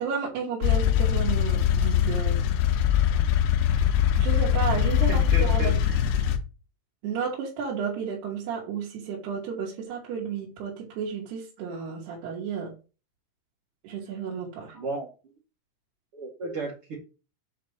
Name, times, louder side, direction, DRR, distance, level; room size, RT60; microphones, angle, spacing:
voice 1, 0.0-2.4 4.1-5.8 7.0-12.7 13.8-14.8, right 6 dB, 55° right, -4 dB, 4.0 m, -32 dB
sound 1, 0.6-6.4, left 9 dB, 80° left, 2.3 m, -22 dB
voice 2, 5.1-5.9 14.7-15.1 16.1-16.9, right 3 dB, 40° right, -3 dB, 2.1 m, -34 dB
8.5 x 5.1 x 7.7 m, 0.33 s
omnidirectional pair, 6.0 m